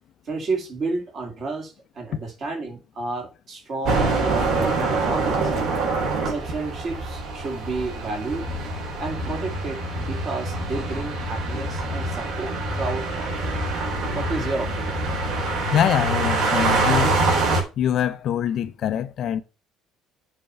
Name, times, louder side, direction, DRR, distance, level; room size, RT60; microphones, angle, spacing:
voice 1, 0.3-5.5 6.2-8.5 9.0-13.5 14.1-15.0, right 3 dB, 30° right, 2.1 m, -31 dB
sound 1, 3.9-17.6, right 2 dB, 55° right, 4.1 m, -25 dB
voice 2, 15.7-17.2 17.8-19.4, left 10 dB, 40° left, 0.6 m, -24 dB
7.8 x 4.3 x 6.9 m
cardioid pair, 180°, 0 cm